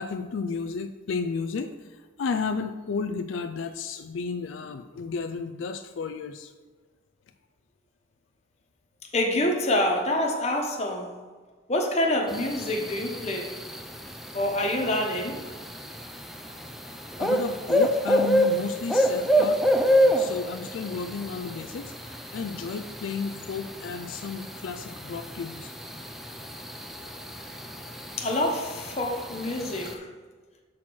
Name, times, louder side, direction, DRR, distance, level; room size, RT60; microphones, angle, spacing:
voice 1, 0.0-6.5 16.9-19.7 20.1-25.7, left 5 dB, 80° left, 8 dB, 0.4 m, -33 dB
voice 2, 9.1-11.1 11.7-13.6 14.3-15.4 28.2-30.1, left 1 dB, 35° left, 1 dB, 1.1 m, -26 dB
sound 1, 12.3-29.9, equal, ahead, 0.4 m, -28 dB
6.2 x 4.3 x 6.0 m, 1.4 s
head